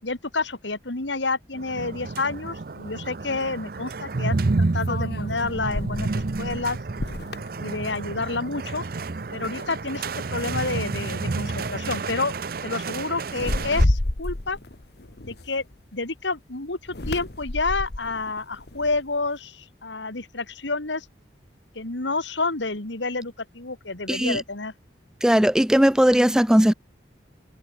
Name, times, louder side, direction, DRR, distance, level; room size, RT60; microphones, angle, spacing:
voice 1, 0.0-6.8 7.6-8.8 9.3-12.3 12.6-14.6 15.2-15.6 15.9-21.1 21.7-24.7, left 3 dB, 80° left, 2.6 m, -29 dB
sound 1, 1.5-13.8, right 3 dB, 55° right, 0.7 m, -30 dB
sound 2, 2.5-2.6 4.8-8.5 8.8-9.1 9.6-10.2 11.1-11.3 11.6-11.9 13.3-15.9 16.9-19.3, left 1 dB, 60° left, 1.5 m, -30 dB
voice 2, 24.1-24.4 25.2-26.7, equal, 5° right, 0.5 m, -18 dB
head